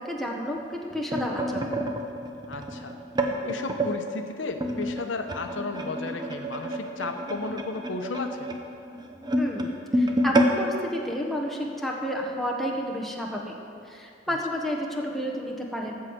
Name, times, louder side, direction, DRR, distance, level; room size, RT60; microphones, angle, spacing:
voice 1, 0.0-1.7 9.4-13.5 13.9-15.9, equal, ahead, -1 dB, 1.1 m, -31 dB
sound 1, 0.6-3.9 4.6-11.9 12.3-12.5 12.7-13.0 13.8-13.9, equal, 25° right, 0.8 m, -29 dB
voice 2, 2.5-3.0 3.4-8.5 14.3-14.4, left 3 dB, 80° left, 6 dB, 0.8 m, -34 dB
13.5 x 4.8 x 8.0 m, 2.5 s
head